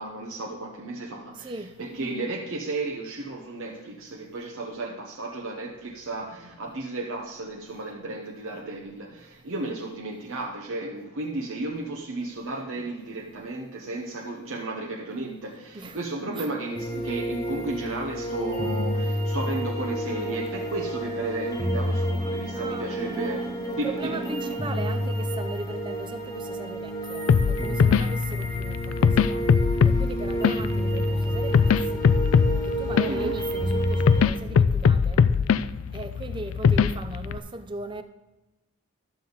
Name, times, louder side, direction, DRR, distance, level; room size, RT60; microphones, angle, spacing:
voice 1, 0.0-25.0 33.1-33.3, right 2 dB, 75° right, 0.9 m, -34 dB
voice 2, 1.4-1.7 15.7-16.0 16.3-16.5 22.5-29.5 29.8-32.2 32.6-35.3 35.9-38.0, right 2 dB, 25° right, 0.5 m, -38 dB
sound 1, 16.7-34.2, equal, 15° left, 1.2 m, -29 dB
sound 2, 27.3-37.4, left 6 dB, 80° left, 0.4 m, -22 dB
12.0 x 7.0 x 3.9 m
head